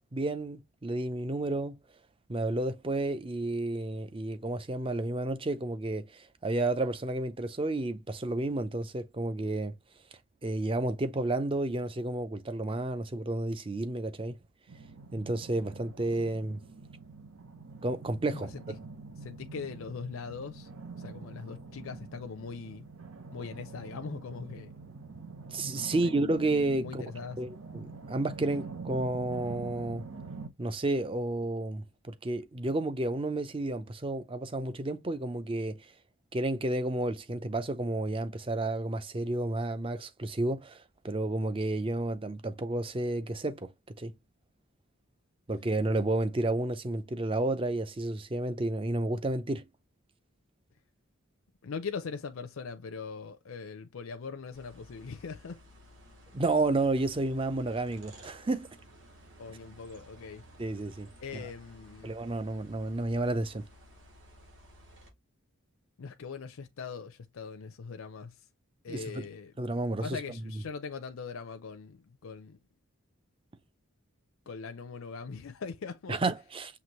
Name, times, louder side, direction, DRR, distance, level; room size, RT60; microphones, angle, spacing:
voice 1, 0.1-1.8 2.3-9.7 10.4-14.4 15.1-16.6 17.8-18.5 25.5-27.0 27.4-30.1 30.6-35.9 36.3-43.7 44.0-44.1 45.5-49.6 56.3-58.7 60.6-61.4 62.0-63.6 68.9-69.2 69.6-70.4 76.1-76.8, right 2 dB, 25° right, 0.5 m, -31 dB
sound 1, 14.7-30.5, right 4 dB, 75° right, 0.9 m, -45 dB
voice 2, 18.3-18.6 19.2-20.7 21.0-22.9 23.3-24.8 26.0-26.1 26.8-27.4 51.6-55.6 59.4-60.4 61.2-62.1 66.0-68.5 68.8-69.5 70.0-72.6 74.5-76.2, left 5 dB, 70° left, 0.5 m, -41 dB
sound 2, 54.5-65.1, equal, 55° right, 2.5 m, -55 dB
5.9 x 2.9 x 3.0 m
head